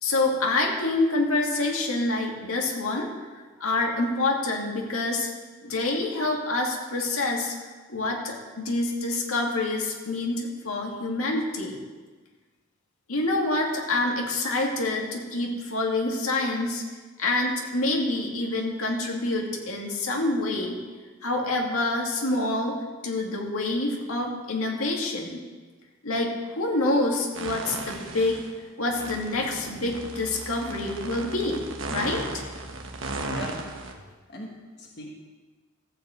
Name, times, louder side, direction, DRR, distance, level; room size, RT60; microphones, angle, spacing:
voice 1, 0.0-3.1 3.6-5.3 5.6-7.5 7.9-11.8 13.1-16.8 17.2-20.8 21.2-22.8 23.0-25.4 26.0-28.4 28.8-31.6 31.9-32.4, left 2 dB, 90° left, 0 dB, 2.2 m, -27 dB
sound 1, 27.3-28.5 28.9-33.9, right 2 dB, 65° right, 1.4 m, -36 dB
voice 2, 33.2-33.7 34.3-35.1, left 1 dB, 50° left, 0 dB, 1.4 m, -38 dB
14.5 x 5.3 x 8.1 m, 1.3 s
head